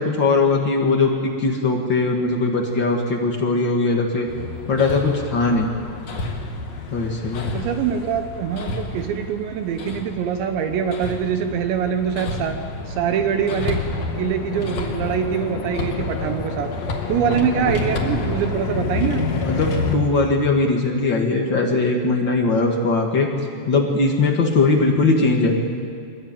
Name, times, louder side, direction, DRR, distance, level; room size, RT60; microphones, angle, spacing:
voice 1, 0.0-4.3 4.7-5.7 6.9-7.5 17.4-17.7 19.4-23.3 23.6-25.6, left 3 dB, 65° left, 1 dB, 1.1 m, -20 dB
Hammer, 4.3-19.9, left 3 dB, 45° left, 2.5 m, -28 dB
voice 2, 7.5-12.6 12.9-13.8 14.2-16.7 17.1-19.2, right 8 dB, 75° right, 7 dB, 3.1 m, -24 dB
23.0 x 22.0 x 9.0 m, 2.2 s
omnidirectional pair, 5.5 m